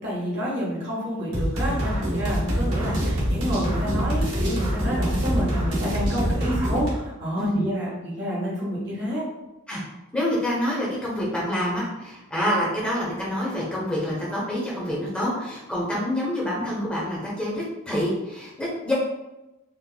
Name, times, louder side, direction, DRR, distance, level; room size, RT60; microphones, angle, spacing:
voice 1, 0.0-9.2, equal, 50° right, -7 dB, 1.3 m, -28 dB
sound 1, 1.3-6.9, equal, 85° right, 1.1 m, -25 dB
voice 2, 7.4-7.7 9.7-9.8 10.1-18.9, equal, 5° left, -6 dB, 0.9 m, -27 dB
4.5 x 2.4 x 2.3 m, 0.99 s
head